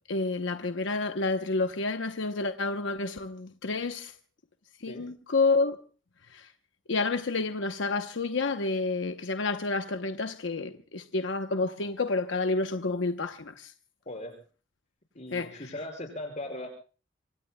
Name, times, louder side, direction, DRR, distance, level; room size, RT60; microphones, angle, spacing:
voice 1, 0.1-4.1 4.8-5.8 6.3-6.5 6.9-13.7 15.3-15.7, left 3 dB, 80° left, 0.9 m, -29 dB
voice 2, 15.1-16.7, left 1 dB, 40° left, 5.7 m, -38 dB
26.5 x 24.5 x 2.2 m
head